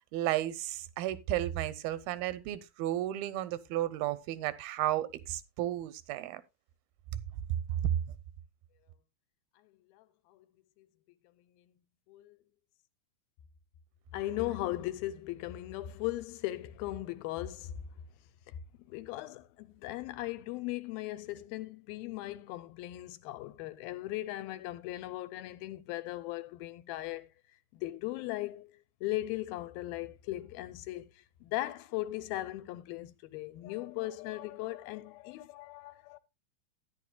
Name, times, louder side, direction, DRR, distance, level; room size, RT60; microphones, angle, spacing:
voice 1, 0.1-6.4, right 14 dB, 90° right, 2.6 m, -33 dB
voice 2, 9.9-10.5 10.8-10.9 11.5-11.7 12.1-12.4 14.1-17.8 18.5-27.3 27.7-28.7 29.0-36.2, left 16 dB, 90° left, 2.6 m, -38 dB
13.5 x 10.0 x 2.2 m
omnidirectional pair, 4.1 m